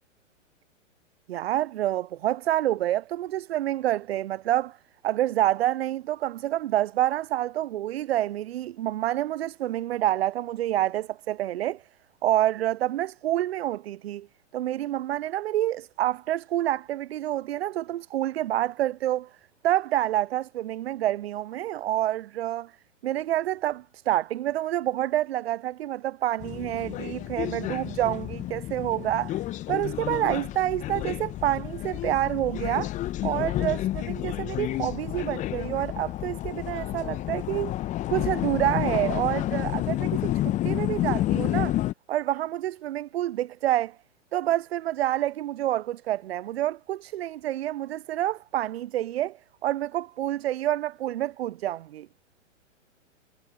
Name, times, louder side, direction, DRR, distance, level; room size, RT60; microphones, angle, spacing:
voice 1, 1.3-4.8 5.0-11.8 12.2-14.3 14.5-19.3 19.6-22.7 23.0-29.4 29.7-32.9 33.2-37.7 38.1-41.8 42.1-44.0 44.3-52.1, right 13 dB, 55° right, 0.5 m, -28 dB
sound 1, 26.4-41.9, left 14 dB, 20° left, 0.9 m, -30 dB
figure-of-eight pair, 115°, 38 cm